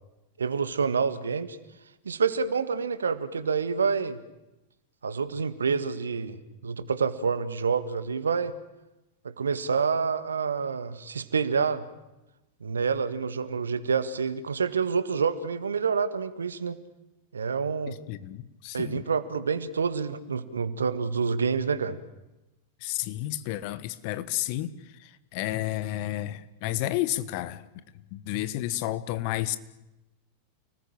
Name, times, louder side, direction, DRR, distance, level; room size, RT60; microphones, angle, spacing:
voice 1, 0.4-1.6 2.0-4.2 5.0-6.4 6.6-8.5 9.2-11.8 12.6-16.8 17.3-18.0 18.7-22.0, right 5 dB, 70° right, 13 dB, 1.7 m, -27 dB
voice 2, 17.9-19.0 22.8-24.7 25.0-27.6 28.1-29.6, left 15 dB, 45° left, 15 dB, 1.5 m, -31 dB
29.5 x 19.5 x 8.8 m, 0.97 s
figure-of-eight pair, 90°, 0 cm